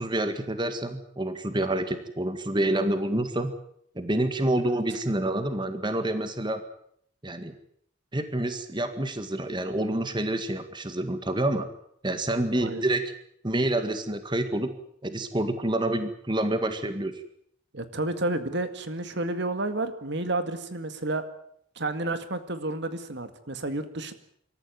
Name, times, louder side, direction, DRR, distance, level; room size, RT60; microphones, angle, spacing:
voice 1, 0.0-3.5 4.0-6.6 7.2-7.5 8.1-11.7 12.0-13.1 13.4-14.8 15.0-17.1, right 1 dB, 25° right, 9 dB, 1.9 m, -28 dB
voice 2, 17.7-21.3 21.8-24.1, right 2 dB, 60° right, 10 dB, 2.0 m, -30 dB
26.0 x 14.0 x 9.4 m, 0.68 s
head